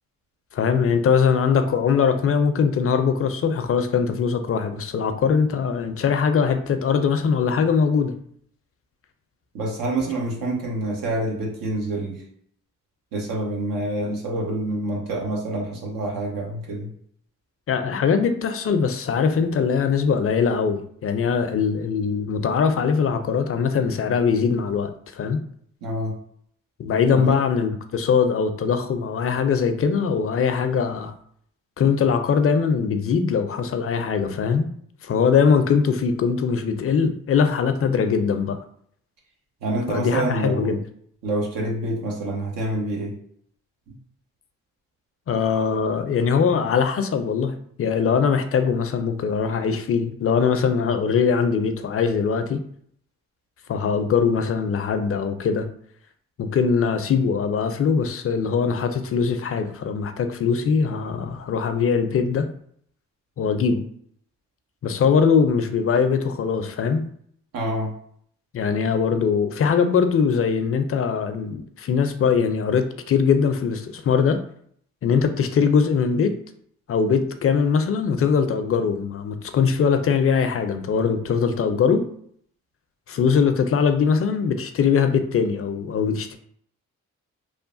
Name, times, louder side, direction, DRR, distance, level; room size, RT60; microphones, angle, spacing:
voice 1, 0.5-8.1 17.7-25.4 26.8-31.1 31.8-34.7 35.0-38.6 39.9-40.8 45.3-52.6 53.7-55.7 56.4-62.5 63.4-63.8 64.8-67.0 68.5-74.4 75.0-76.4 76.9-82.1 83.1-86.4, left 6 dB, 40° left, 9 dB, 0.4 m, -21 dB
voice 2, 9.5-12.2 13.1-16.9 25.8-26.2 27.1-27.4 39.6-40.7 41.2-43.1 43.9-44.0 67.5-67.9, right 1 dB, 85° right, -1 dB, 0.9 m, -27 dB
3.0 x 2.2 x 2.5 m, 0.63 s
supercardioid pair, 55°, 34 cm